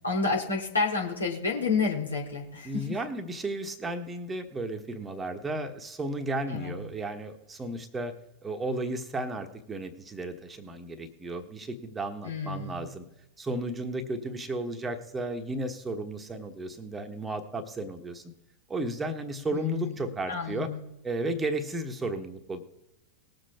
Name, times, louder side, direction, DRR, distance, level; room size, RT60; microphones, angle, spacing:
voice 1, 0.0-2.9 6.5-6.7 12.2-12.8 19.5-20.8, left 4 dB, 75° left, -1 dB, 3.0 m, -30 dB
voice 2, 2.6-8.1 8.4-13.0 13.4-18.3 18.7-20.7 21.0-22.6, right 1 dB, 15° right, 6 dB, 1.3 m, -34 dB
20.0 x 7.6 x 3.5 m, 0.93 s
figure-of-eight pair, 90°, 0 cm